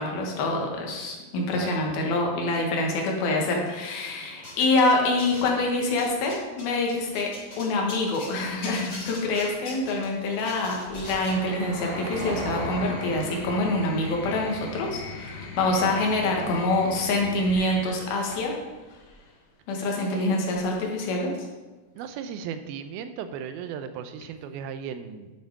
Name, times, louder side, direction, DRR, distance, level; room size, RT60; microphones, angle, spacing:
voice 1, 0.0-7.3 7.6-18.6 19.7-21.3, left 2 dB, 80° left, 0 dB, 3.4 m, -26 dB
sound 1, 4.4-5.6 5.9-8.3 8.6-11.4, left 2 dB, 30° left, 3.5 m, -40 dB
Car passing by, 8.3-16.5, right 2 dB, 50° right, 2.0 m, -40 dB
sound 2, 10.9-19.3 20.5-21.1, left 3 dB, 60° left, 2.6 m, -40 dB
voice 2, 20.0-20.4 22.0-25.3, right 7 dB, 90° right, 9 dB, 2.6 m, -36 dB
10.5 x 6.5 x 4.7 m, 1.2 s
omnidirectional pair, 4.3 m